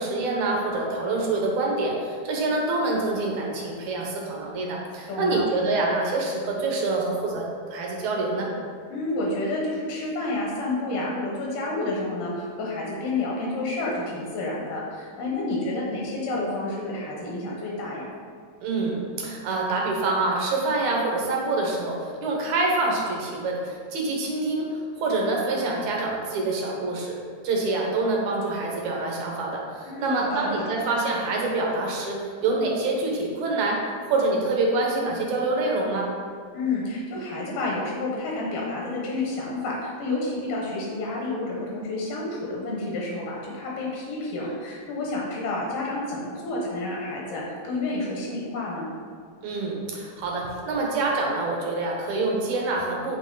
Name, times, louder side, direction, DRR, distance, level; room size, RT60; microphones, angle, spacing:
voice 1, 0.0-7.5 7.7-8.5 18.6-27.2 27.4-33.8 34.1-36.1 49.4-53.2, right 2 dB, 70° right, -1 dB, 2.5 m, -26 dB
voice 2, 5.1-5.4 8.9-18.1 29.9-30.7 36.5-48.9, left 2 dB, 80° left, -3 dB, 2.9 m, -30 dB
8.0 x 5.8 x 3.9 m, 2.1 s
omnidirectional pair, 3.7 m